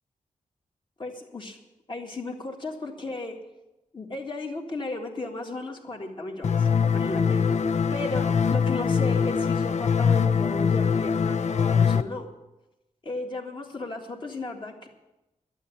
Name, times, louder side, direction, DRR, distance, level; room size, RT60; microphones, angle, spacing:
voice 1, 1.0-1.6 1.9-3.4 3.9-7.4 7.9-12.3 13.0-14.9, left 2 dB, 40° left, 2 dB, 1.9 m, -35 dB
sound 1, 6.4-12.0, left 6 dB, 60° left, 0.5 m, -23 dB
12.0 x 8.1 x 9.8 m, 0.99 s
wide cardioid pair, 155°, 13 cm